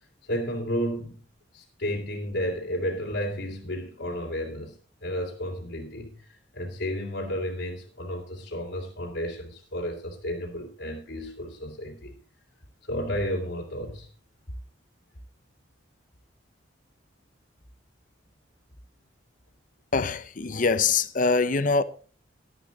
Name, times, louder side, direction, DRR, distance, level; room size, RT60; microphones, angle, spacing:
voice 1, 0.3-1.2 1.5-4.7 5.0-6.3 6.5-12.1 12.9-14.1, equal, 70° left, 2.9 m, -32 dB
voice 2, 19.9-21.8, left 4 dB, 45° left, 0.7 m, -23 dB
12.0 x 11.0 x 3.9 m
head